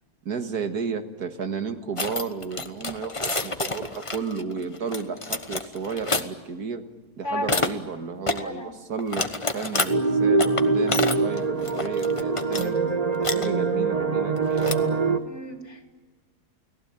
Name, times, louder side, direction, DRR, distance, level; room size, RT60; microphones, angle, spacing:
voice 1, 0.3-6.8 7.2-12.8 13.2-15.0, right 5 dB, 80° right, 7 dB, 2.1 m, -32 dB
sound 1, 2.0-6.2 7.4-7.7 8.3-8.4 9.0-9.9 10.4-12.7 13.0-13.5 14.4-15.0, left 3 dB, 20° left, 1.1 m, -29 dB
voice 2, 7.2-7.6 8.3-8.7 15.3-15.8, left 1 dB, 45° left, 4 dB, 3.3 m, -33 dB
sound 2, 9.9-15.2, right 4 dB, 25° right, 1.3 m, -24 dB
30.0 x 18.5 x 9.0 m, 1.4 s
omnidirectional pair, 1.6 m